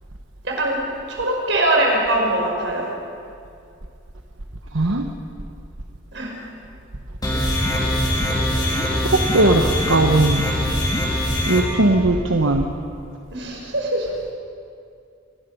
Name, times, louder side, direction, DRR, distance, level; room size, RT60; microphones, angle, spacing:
voice 1, 0.4-0.8 1.1-2.9 6.1-6.3 13.3-14.1, right 1 dB, 65° right, -1 dB, 5.0 m, -22 dB
sound 1, 7.2-11.6, equal, 20° left, 3.5 m, -22 dB
voice 2, 9.1-10.4 11.5-12.7, right 2 dB, 85° right, 3 dB, 1.2 m, -18 dB
26.5 x 19.0 x 5.6 m, 2.4 s
head